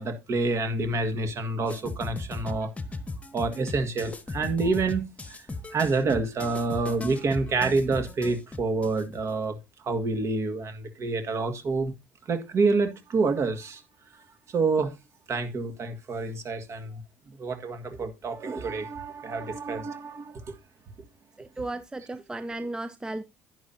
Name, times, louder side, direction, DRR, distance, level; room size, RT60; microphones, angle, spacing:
voice 1, 0.0-2.7 3.3-5.4 5.7-9.6 9.8-11.9 12.3-13.8 14.5-14.9 15.3-17.0 17.3-20.5, right 3 dB, 40° right, 1.8 m, -28 dB
sound 1, 1.7-9.3, left 3 dB, 20° left, 1.2 m, -37 dB
voice 2, 21.4-23.2, right 2 dB, 10° right, 0.6 m, -35 dB
11.0 x 9.5 x 2.7 m
figure-of-eight pair, 55°, 7 cm